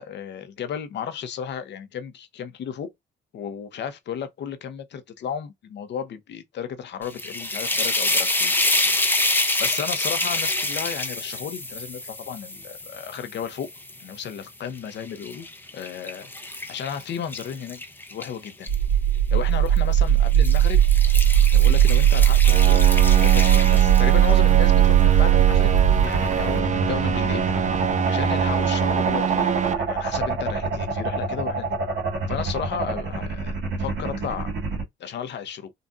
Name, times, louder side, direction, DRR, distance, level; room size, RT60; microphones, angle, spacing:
voice 1, 0.0-2.9 3.3-9.1 9.6-13.7 14.0-15.5 15.7-17.8 18.1-18.7 19.3-20.8 21.5-22.8 23.2-25.7 26.0-27.5 28.0-31.7 32.3-34.5 35.0-35.7, left 8 dB, 60° left, 0.7 m, -34 dB
sound 1, 7.0-14.2 14.8-18.8 19.7-19.9 20.3-24.5, left 2 dB, 10° left, 0.6 m, -27 dB
sound 2, 18.7-34.8, right 10 dB, 70° right, 1.9 m, -20 dB
sound 3, 22.4-29.7, right 7 dB, 35° right, 0.6 m, -25 dB
3.8 x 2.5 x 2.3 m
cardioid pair, 90°, 20 cm